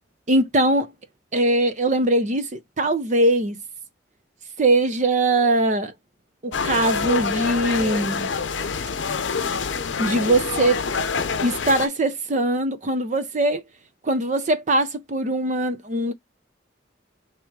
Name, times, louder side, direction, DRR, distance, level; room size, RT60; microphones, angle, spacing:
voice 1, 0.3-0.9 1.3-3.6 4.6-5.9 6.4-8.3 10.0-10.8 11.4-13.6 14.0-16.1, right 1 dB, 40° right, 0.7 m, -21 dB
sound 1, 6.5-11.9, left 5 dB, 75° left, 0.7 m, -26 dB
3.5 x 3.0 x 4.6 m
head